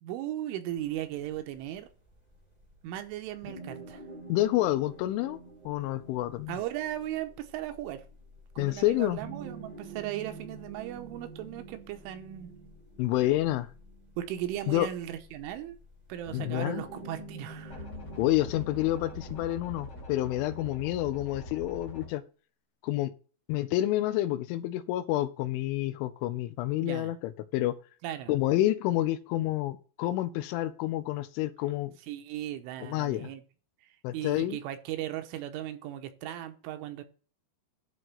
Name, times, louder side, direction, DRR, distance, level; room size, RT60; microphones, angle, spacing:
voice 1, 0.0-1.9 2.8-4.0 6.5-8.0 8.6-12.5 14.2-15.8 16.1-17.9 26.8-27.1 28.0-28.3 32.1-33.4 33.8-37.0, right 12 dB, 80° right, 8 dB, 3.3 m, -37 dB
sound 1, 0.7-19.5, right 2 dB, 60° right, 0.4 m, -47 dB
voice 2, 4.3-5.4 5.7-6.6 8.6-9.2 13.0-13.7 14.7-14.9 16.3-16.8 18.2-22.2 22.8-23.1 23.5-27.8 28.3-31.9 32.8-33.3 34.0-34.6, left 15 dB, 80° left, 12 dB, 3.0 m, -28 dB
sound 2, 17.7-22.1, left 2 dB, 40° left, 1.2 m, -43 dB
11.0 x 3.8 x 7.6 m, 0.37 s
omnidirectional pair, 5.7 m